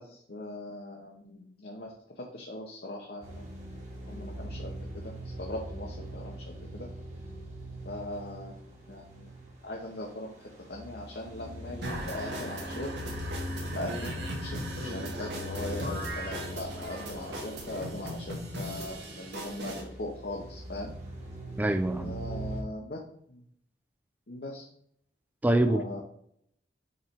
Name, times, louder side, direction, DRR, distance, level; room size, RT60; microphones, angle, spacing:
voice 1, 0.0-3.4 4.1-5.0 5.4-6.9 7.8-8.5 8.9-9.4 9.6-13.0 13.7-20.9 22.0-23.0 23.3-23.4 24.3-24.7 25.6-26.0, left 1 dB, 60° left, -1 dB, 0.8 m, -40 dB
sound 1, 3.2-22.6, equal, 45° right, 1.9 m, -41 dB
sound 2, 11.8-19.8, right 1 dB, 80° right, 1.4 m, -38 dB
voice 2, 21.6-22.2 25.4-26.0, right 1 dB, 10° right, 7 dB, 0.3 m, -25 dB
6.6 x 3.2 x 4.4 m, 0.68 s
head